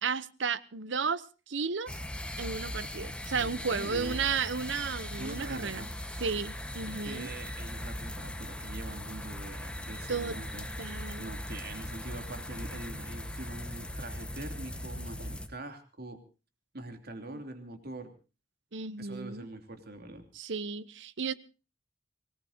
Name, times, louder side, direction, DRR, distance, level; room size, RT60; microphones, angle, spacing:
voice 1, 0.0-1.9 2.4-5.9 6.2-7.3 10.1-10.4 10.8-11.3 17.3-17.4 18.7-19.5 20.3-21.3, right 5 dB, 80° right, 0.9 m, -33 dB
sound 1, 1.9-15.5, left 1 dB, 5° left, 1.4 m, -39 dB
voice 2, 3.3-4.2 5.2-5.9 6.9-10.7 11.2-16.2 16.7-18.1 19.0-20.3, right 2 dB, 55° right, 3.2 m, -44 dB
25.0 x 19.0 x 2.9 m
head